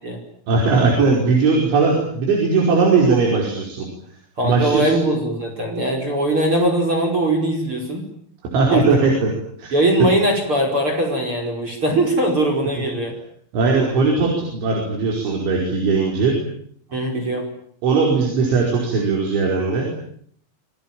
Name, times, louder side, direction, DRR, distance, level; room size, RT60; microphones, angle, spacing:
voice 1, 0.5-3.9 4.4-5.0 8.5-9.3 9.6-9.7 13.5-16.4 17.8-19.9, right 4 dB, 80° right, 0 dB, 7.5 m, -18 dB
voice 2, 4.4-8.0 8.7-8.8 9.7-13.1 16.9-17.5, right 1 dB, 30° right, 3 dB, 5.7 m, -20 dB
28.0 x 22.5 x 9.1 m, 0.65 s
omnidirectional pair, 5.3 m